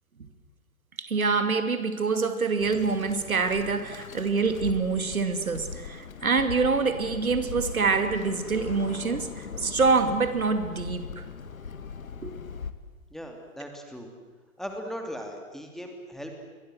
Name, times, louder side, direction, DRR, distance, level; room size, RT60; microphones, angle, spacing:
voice 1, 1.0-9.3 9.6-11.2 12.2-12.4, right 4 dB, 70° right, 9 dB, 2.7 m, -26 dB
Bird, 2.6-12.7, left 5 dB, 70° left, 1.9 m, -39 dB
voice 2, 13.1-14.1 14.6-16.4, equal, ahead, 3 dB, 2.9 m, -38 dB
29.0 x 22.5 x 7.9 m, 1.4 s
figure-of-eight pair, 120°, 43 cm